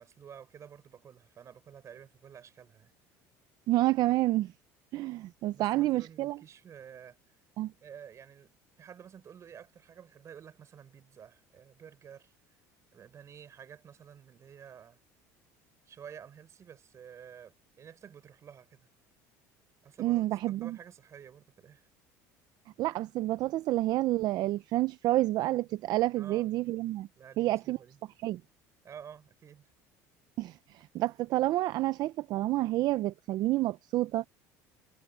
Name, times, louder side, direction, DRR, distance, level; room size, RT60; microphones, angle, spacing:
voice 1, 0.0-2.9 5.0-5.2 5.5-7.2 7.8-12.4 12.9-15.0 15.9-18.9 19.8-21.9 26.2-26.5 27.2-28.0 28.8-29.7, right 8 dB, 40° right, 5.5 m, -51 dB
voice 2, 3.7-4.5 4.9-6.4 7.6-7.7 20.0-20.8 22.8-27.1 27.4-27.8 28.2-28.4 30.4-34.3, right 16 dB, 60° right, 0.6 m, -29 dB
supercardioid pair, 95°, 8 cm